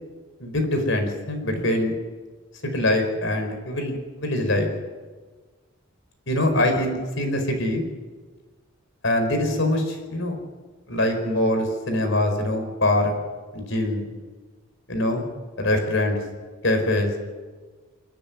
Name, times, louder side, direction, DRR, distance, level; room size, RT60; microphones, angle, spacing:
voice 1, 0.4-1.9 2.6-4.7 6.3-7.8 9.0-10.4 10.9-13.1 13.5-14.0 14.9-15.2 15.6-16.2 16.6-17.2, left 1 dB, 65° left, 5 dB, 4.8 m, -23 dB
29.5 x 10.0 x 9.6 m, 1.4 s
head